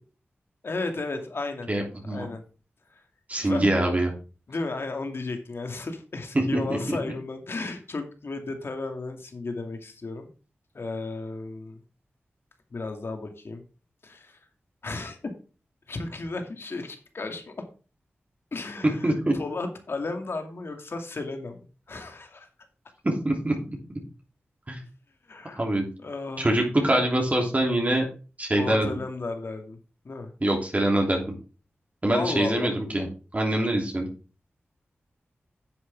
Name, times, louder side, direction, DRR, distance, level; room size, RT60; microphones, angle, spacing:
voice 1, 0.6-1.7 2.1-2.4 2.9-3.0 3.4-3.8 4.5-10.3 10.7-11.8 12.7-13.6 14.0-14.4 14.8-15.3 15.9-17.5 18.5-22.5 25.3-25.6 26.0-26.6 28.6-29.8 30.0-30.3 32.1-32.8, left 3 dB, 65° left, 5 dB, 2.3 m, -34 dB
voice 2, 1.7-2.3 3.3-4.1 6.5-6.6 6.9-7.0 19.0-19.3 23.0-23.5 24.7-24.8 25.6-25.9 26.4-28.1 28.4-28.9 30.4-31.2 32.0-33.0 33.3-34.1, right 1 dB, 35° right, 0 dB, 3.2 m, -24 dB
10.5 x 7.8 x 3.6 m, 0.35 s
cardioid pair, 45°, 4 cm